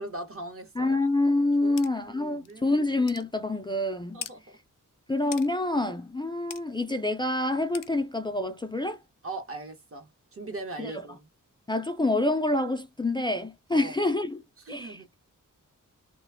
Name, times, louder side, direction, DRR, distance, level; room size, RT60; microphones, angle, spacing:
voice 1, 0.0-1.0 1.6-1.8 2.1-2.8 4.1-4.6 9.2-11.3 13.7-14.0 14.6-15.1, right 2 dB, 40° right, 0.9 m, -40 dB
voice 2, 0.8-4.2 5.1-9.0 10.8-10.9 11.7-14.4 14.7-15.2, left 2 dB, 15° left, 0.3 m, -27 dB
sound 1, 1.8-1.9 2.5-2.6 3.1-3.3 4.2-4.4 5.3-5.5 6.5-6.6 7.7-7.9, left 10 dB, 75° left, 0.5 m, -39 dB
2.4 x 2.2 x 3.4 m
wide cardioid pair, 110°, 33 cm